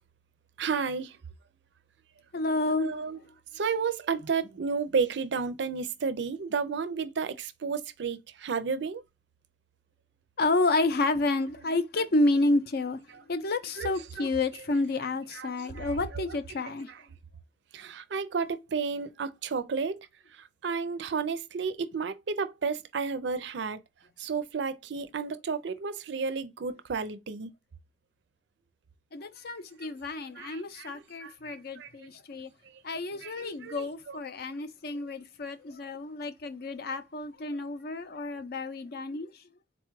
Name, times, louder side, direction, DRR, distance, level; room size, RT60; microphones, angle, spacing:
voice 1, 0.6-1.2 2.7-3.2 3.5-9.0 11.6-12.1 13.1-13.2 13.8-14.6 15.3-16.6 16.9-17.1 17.7-20.0 20.3-23.8 24.2-27.5 29.8-32.1 33.2-34.2, right 5 dB, 60° right, 0.4 m, -33 dB
voice 2, 2.3-2.9 10.4-13.0 13.3-16.9 29.1-32.5 32.8-39.3, left 2 dB, 55° left, 0.5 m, -30 dB
4.0 x 2.3 x 4.6 m
head